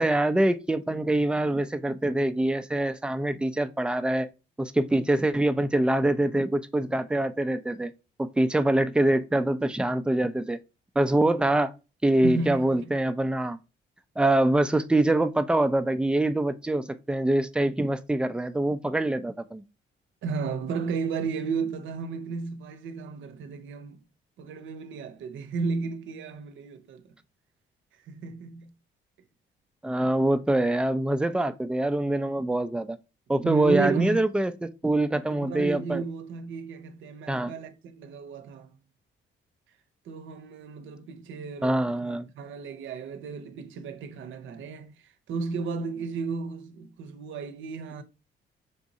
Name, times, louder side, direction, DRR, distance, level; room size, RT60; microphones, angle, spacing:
voice 1, 0.0-4.3 4.6-7.9 8.2-10.6 11.0-11.7 12.0-13.6 14.2-19.6 29.8-33.0 33.3-36.0 37.3-37.5 41.6-42.3, right 1 dB, 5° right, 0.4 m, -24 dB
voice 2, 12.2-13.0 20.2-24.0 24.4-27.0 28.0-28.7 33.4-34.2 35.3-38.8 40.1-48.0, right 4 dB, 75° right, 0.7 m, -33 dB
3.6 x 2.6 x 4.0 m
cardioid pair, 90°, 20 cm